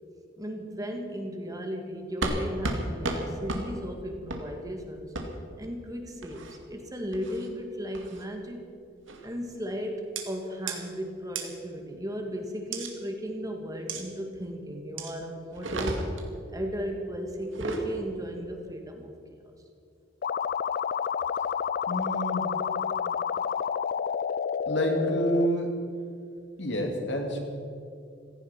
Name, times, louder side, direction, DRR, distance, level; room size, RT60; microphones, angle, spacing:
voice 1, 0.4-5.1 5.6-8.7 9.2-16.0 16.5-19.5, equal, 20° right, 3 dB, 1.8 m, -36 dB
sound 1, 2.2-2.4 2.6-2.8 3.0-3.2 3.5-3.6 4.3-4.4 5.1-5.3 6.2-6.6 7.1-7.5 7.9-8.2 9.1-9.3 10.2-10.3 10.7-10.8 11.4-11.5 12.7-12.9 13.9-14.0 15.0-15.1 15.5-16.3 17.4-17.8, right 2 dB, 85° right, 2.2 m, -32 dB
sound 2, 20.2-25.5, left 7 dB, 50° left, 0.3 m, -29 dB
voice 2, 21.9-22.5 24.7-25.7 26.6-27.4, equal, 65° left, 2 dB, 2.7 m, -28 dB
17.0 x 15.0 x 5.9 m, 2.4 s
head